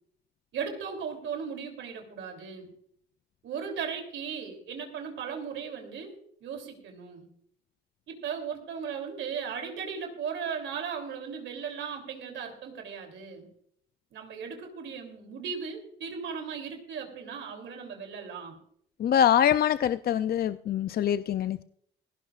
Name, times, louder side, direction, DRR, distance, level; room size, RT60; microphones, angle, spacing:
voice 1, 0.5-2.7 3.4-7.3 8.1-13.5 14.1-18.6, right 6 dB, 75° right, 3 dB, 3.2 m, -37 dB
voice 2, 19.0-21.6, left 9 dB, 50° left, 13 dB, 0.5 m, -24 dB
17.5 x 16.0 x 2.5 m, 0.68 s
cardioid pair, 90°, 20 cm